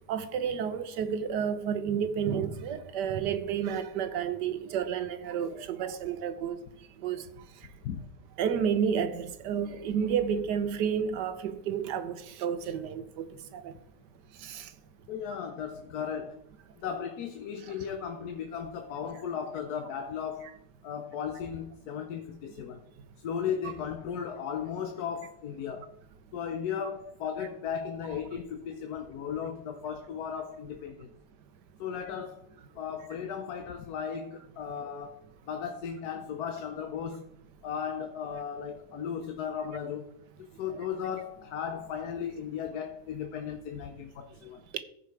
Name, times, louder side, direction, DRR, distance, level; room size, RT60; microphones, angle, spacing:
voice 1, 0.1-6.6 7.0-7.2 8.4-13.3 13.5-13.7 14.4-14.7 28.1-28.2, right 7 dB, 90° right, 1.4 m, -31 dB
voice 2, 15.1-16.4 16.8-20.6 20.8-22.9 23.2-25.9 26.3-31.1 31.8-32.4 32.7-37.3 37.6-40.1 40.6-44.6, left 7 dB, 70° left, 1.3 m, -36 dB
14.5 x 5.1 x 4.6 m
omnidirectional pair, 1.8 m